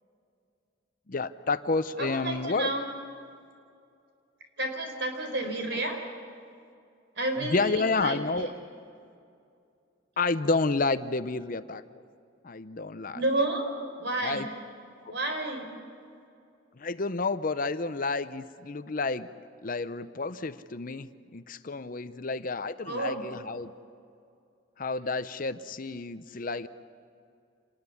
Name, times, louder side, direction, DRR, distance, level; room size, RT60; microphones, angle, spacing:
voice 1, 1.1-2.7 7.4-8.5 10.2-11.8 12.4-13.2 14.2-14.5 16.7-19.3 19.6-23.7 24.8-26.7, left 3 dB, 45° left, 12 dB, 0.7 m, -30 dB
voice 2, 2.0-2.8 4.6-6.0 7.2-8.5 13.1-13.7 14.0-14.5 15.1-15.7 22.9-23.2, right 2 dB, 60° right, 4 dB, 4.8 m, -31 dB
27.5 x 20.5 x 7.1 m, 2.4 s
head